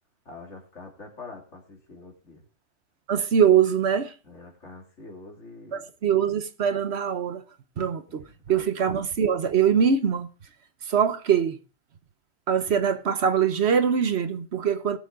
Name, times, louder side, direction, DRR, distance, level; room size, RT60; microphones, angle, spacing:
voice 1, 0.2-2.4 4.2-5.8 8.1-8.6, left 3 dB, 70° left, 3.2 m, -45 dB
voice 2, 3.1-4.1 5.7-7.4 7.8-10.3 10.9-11.6 12.5-15.0, right 7 dB, 60° right, 1.1 m, -23 dB
19.0 x 7.1 x 3.6 m
omnidirectional pair, 1.3 m